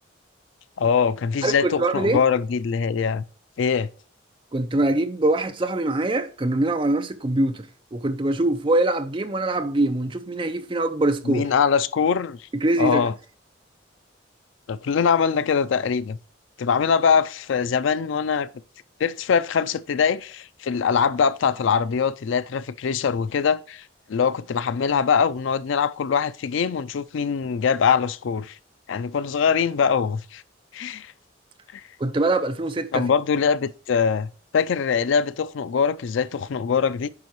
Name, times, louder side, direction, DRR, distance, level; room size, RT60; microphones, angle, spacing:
voice 1, 0.8-3.2 3.6-3.9 11.3-12.4 12.8-13.1 14.7-16.2 16.6-18.5 19.0-28.6 28.9-30.4 30.7-31.1 31.7-31.8 32.9-34.3 34.5-37.1, left 6 dB, 75° left, 0.4 m, -23 dB
voice 2, 1.4-2.2 4.5-11.5 12.5-13.1 32.0-33.1, right 2 dB, 25° right, 0.5 m, -23 dB
9.6 x 4.7 x 3.0 m
head